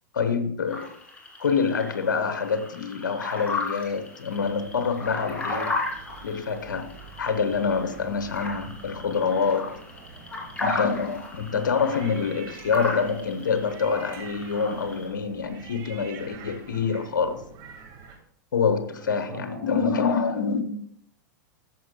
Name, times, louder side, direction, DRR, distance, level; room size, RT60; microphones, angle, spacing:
voice 1, 0.1-0.9 1.4-5.7 6.2-9.7 10.6-17.4 18.5-20.6, left 5 dB, 80° left, 1.0 m, -26 dB
sound 1, 0.7-15.1, left 3 dB, 10° left, 2.8 m, -35 dB
sound 2, 4.4-18.2, right 5 dB, 45° right, 2.2 m, -47 dB
voice 2, 10.0-10.5 19.0-20.6, right 3 dB, 90° right, 3.0 m, -44 dB
13.5 x 6.9 x 2.2 m
hypercardioid pair, 105°, 10 cm